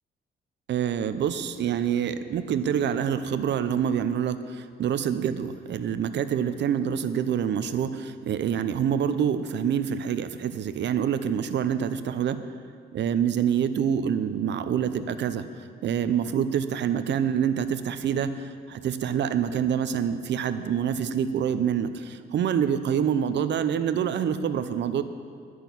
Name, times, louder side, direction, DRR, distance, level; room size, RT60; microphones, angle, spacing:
voice 1, 0.7-12.4 12.9-15.5 15.8-25.0, right 8 dB, 60° right, 11 dB, 0.7 m, -26 dB
11.0 x 6.2 x 8.4 m, 2.1 s
cardioid pair, 90°, 20 cm